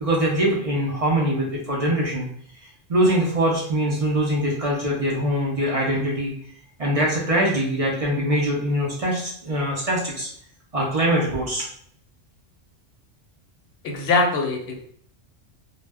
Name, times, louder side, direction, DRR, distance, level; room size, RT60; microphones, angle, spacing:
voice 1, 0.0-2.3 2.9-6.3 6.8-10.3 10.7-11.7, right 1 dB, 45° right, -3 dB, 0.5 m, -23 dB
voice 2, 13.8-14.7, left 3 dB, 65° left, 2 dB, 0.8 m, -22 dB
2.1 x 2.1 x 3.3 m, 0.64 s
omnidirectional pair, 1.2 m